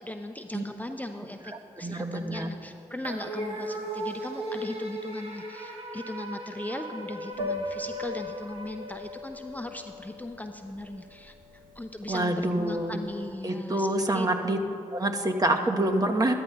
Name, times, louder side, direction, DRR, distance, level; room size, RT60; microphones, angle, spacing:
voice 1, 0.0-13.9 14.1-14.8, left 1 dB, 10° left, 6 dB, 0.5 m, -38 dB
voice 2, 1.5-2.5 12.1-13.0 13.4-14.6 14.9-16.3, right 1 dB, 30° right, 4 dB, 1.0 m, -27 dB
sound 1, 3.0-9.6, right 1 dB, 45° right, 1.5 m, -37 dB
Piano, 7.3-13.3, left 2 dB, 85° right, 1.0 m, -39 dB
13.5 x 12.5 x 2.3 m, 2.9 s
supercardioid pair, 40°, 13 cm